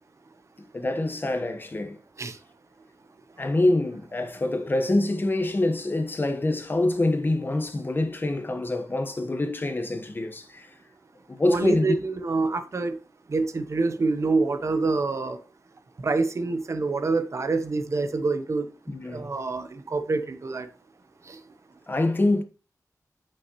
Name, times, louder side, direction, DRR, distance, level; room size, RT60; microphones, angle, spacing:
voice 1, 0.7-2.0 3.4-10.7 11.3-11.9 18.9-19.3 21.9-22.4, left 2 dB, 30° left, 1.2 m, -25 dB
voice 2, 11.4-13.0 13.3-15.4 16.0-18.7 19.0-20.7 21.3-21.4, right 3 dB, 50° right, 0.9 m, -26 dB
8.7 x 6.4 x 3.0 m
wide cardioid pair, 95°, 7 cm